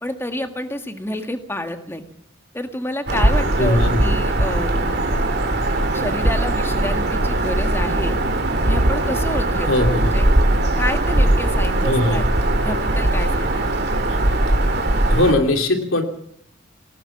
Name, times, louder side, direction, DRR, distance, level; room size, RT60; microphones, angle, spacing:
voice 1, 0.0-2.0 2.5-4.9 5.9-8.1 8.7-10.3 10.8-12.2 12.6-13.7, left 1 dB, 10° left, 6 dB, 1.8 m, -29 dB
Bird vocalization bird call bird song, 3.1-15.3, right 1 dB, 55° right, 3.0 m, -19 dB
voice 2, 3.6-4.2 9.7-10.1 11.8-12.3 14.1-14.2 15.1-16.0, left 1 dB, 85° left, 5 dB, 2.9 m, -20 dB
19.5 x 19.0 x 7.3 m, 0.72 s
head